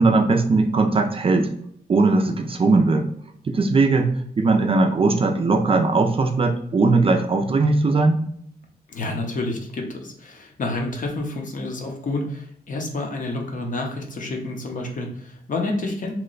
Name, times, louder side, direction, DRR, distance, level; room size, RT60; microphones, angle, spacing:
voice 1, 0.0-1.5 1.9-3.1 3.5-8.2, right 3 dB, 35° right, 4 dB, 0.3 m, -19 dB
voice 2, 8.9-16.1, left 2 dB, 50° left, 2 dB, 0.7 m, -29 dB
3.0 x 2.2 x 3.8 m, 0.68 s
wide cardioid pair, 120°, 17 cm